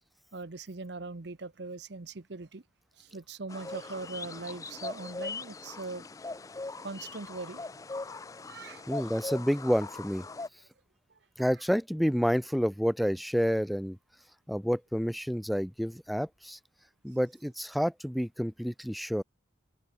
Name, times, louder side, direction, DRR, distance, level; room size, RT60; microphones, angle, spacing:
voice 1, 0.3-2.6 3.0-6.0 6.8-7.7 8.5-9.1, right 3 dB, 60° right, 0.9 m, -41 dB
sound 1, 3.5-10.5, left 3 dB, 15° left, 0.3 m, -40 dB
voice 2, 8.9-10.2 11.4-14.0 14.5-16.6 17.0-19.2, equal, ahead, 0.7 m, -29 dB
open air
head